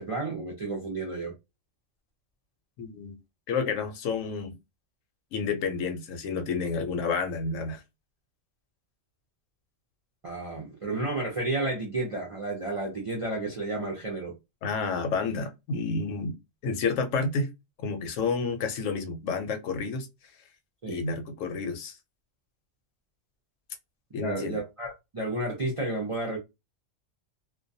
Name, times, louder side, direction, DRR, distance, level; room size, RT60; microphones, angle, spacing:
voice 1, 0.0-1.3 10.2-14.4 20.8-21.0 24.2-26.4, right 2 dB, 50° right, 0.4 m, -31 dB
voice 2, 2.8-3.2 3.5-4.5 5.3-7.8 14.6-16.4 16.6-17.5 17.8-20.1 20.9-22.0 24.1-24.6, left 4 dB, 80° left, 0.9 m, -30 dB
2.2 x 2.2 x 2.6 m
omnidirectional pair, 1.3 m